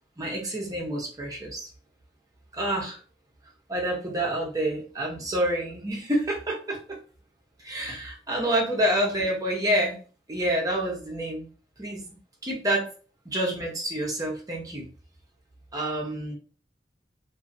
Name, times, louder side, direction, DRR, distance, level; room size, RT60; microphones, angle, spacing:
voice 1, 0.2-1.7 2.5-3.0 3.7-7.0 7.6-10.0 10.3-11.5 11.8-12.2 12.4-12.9 13.2-14.9 15.7-16.4, right 1 dB, 20° right, -1 dB, 0.8 m, -28 dB
2.7 x 2.6 x 2.5 m, 0.37 s
head